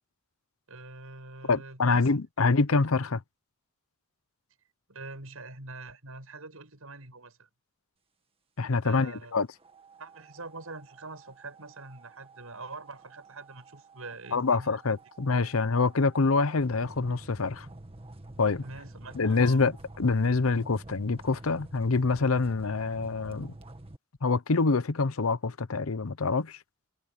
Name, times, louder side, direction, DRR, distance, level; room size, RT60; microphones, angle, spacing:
voice 1, 0.7-2.1 2.4-2.5 4.9-7.5 8.8-9.3 10.0-15.0 15.4-15.6 18.6-19.7, right 3 dB, 80° right, 7.6 m, -44 dB
voice 2, 1.5-3.2 8.6-9.5 14.3-17.7 18.4-18.6 19.2-23.5 24.2-26.6, left 4 dB, 75° left, 0.8 m, -26 dB
sound 1, 9.6-24.0, right 2 dB, 25° right, 1.9 m, -49 dB
head